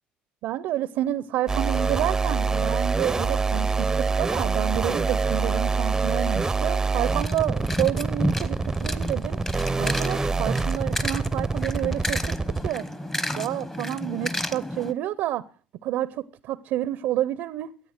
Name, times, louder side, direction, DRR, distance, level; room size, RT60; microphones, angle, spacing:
voice 1, 0.4-9.4 9.8-12.3 12.6-12.9 13.3-15.4 15.8-17.7, right 13 dB, 75° right, 0.6 m, -29 dB
sound 1, 1.5-12.7, right 4 dB, 15° right, 0.6 m, -25 dB
sound 2, 7.1-14.9, left 1 dB, 15° left, 1.1 m, -32 dB
13.5 x 8.5 x 6.4 m
cardioid pair, 110°, 3 cm